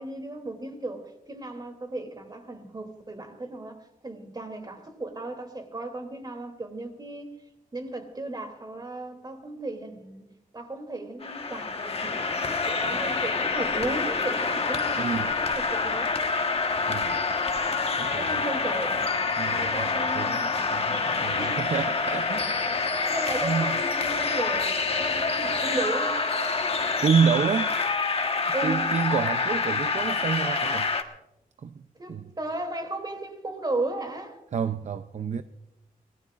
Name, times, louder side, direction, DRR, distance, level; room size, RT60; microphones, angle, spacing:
voice 1, 0.0-7.3 7.7-10.2 10.5-16.2 18.1-19.0 19.5-20.4 21.4-21.7 23.1-26.2 28.5-28.9 32.0-34.4, right 2 dB, 30° right, 2.9 m, -35 dB
sound 1, 11.2-31.0, left 4 dB, 40° left, 1.4 m, -27 dB
voice 2, 14.9-15.3 16.9-17.2 18.0-18.4 19.4-22.9 23.4-23.8 27.0-27.8 28.6-30.9 31.6-32.3 34.5-35.4, right 6 dB, 50° right, 0.6 m, -29 dB
sound 2, 22.5-27.4, right 4 dB, 85° left, 3.3 m, -41 dB
24.5 x 19.0 x 2.5 m
wide cardioid pair, 105°, 15 cm